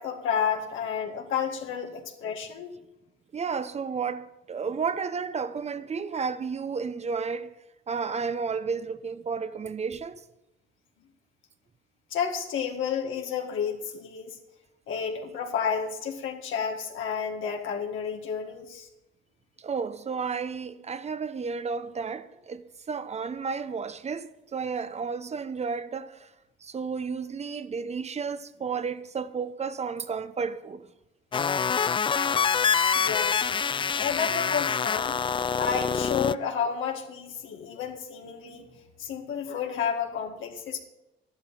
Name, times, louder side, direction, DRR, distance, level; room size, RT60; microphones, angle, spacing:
voice 1, 0.0-2.7 12.1-14.4 14.9-18.9 32.9-33.5 34.0-35.2 35.6-38.7 39.0-40.8, left 7 dB, 80° left, 1.9 m, -31 dB
voice 2, 3.3-7.6 7.9-10.2 19.6-26.3 26.6-30.9 33.8-34.2 35.6-36.0 36.3-36.4 38.4-38.6 39.8-39.9, right 5 dB, 35° right, 0.8 m, -32 dB
sound 1, 31.3-36.3, left 6 dB, 25° left, 0.3 m, -26 dB
12.0 x 11.0 x 5.6 m
cardioid pair, 90°, 20 cm